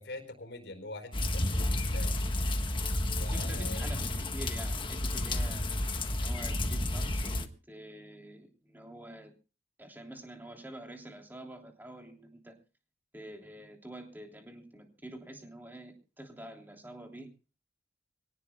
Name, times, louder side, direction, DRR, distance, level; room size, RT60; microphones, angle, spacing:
voice 1, 0.0-2.1 3.2-3.9, left 2 dB, 80° left, 8 dB, 4.4 m, -44 dB
sound 1, 1.1-7.5, left 1 dB, 30° left, 1.3 m, -31 dB
voice 2, 3.2-5.7 6.1-9.3 9.8-12.6 13.1-17.3, right 1 dB, 10° right, 2 dB, 3.1 m, -47 dB
25.5 x 18.5 x 2.3 m, 0.34 s
head